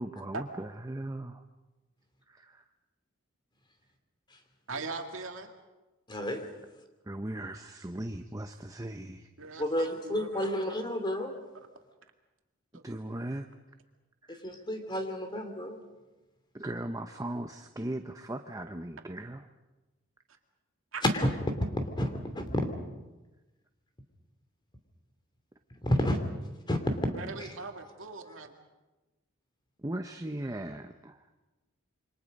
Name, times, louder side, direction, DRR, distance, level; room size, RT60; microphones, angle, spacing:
voice 1, 0.0-1.4 2.3-2.6 7.0-9.3 12.8-13.5 14.2-14.4 16.5-19.5 29.8-31.3, right 1 dB, 15° right, 6 dB, 0.8 m, -38 dB
voice 2, 4.7-5.5 9.4-10.9 12.7-12.8 20.9-21.0 27.1-28.5, right 3 dB, 70° right, 4 dB, 2.4 m, -40 dB
voice 3, 6.1-6.4 9.6-11.3 14.3-15.8 21.2-21.3 21.7-22.6 25.8-26.2 26.7-27.0 27.4-27.5, equal, 20° left, 6 dB, 2.8 m, -31 dB
28.0 x 25.0 x 5.4 m, 1.1 s
head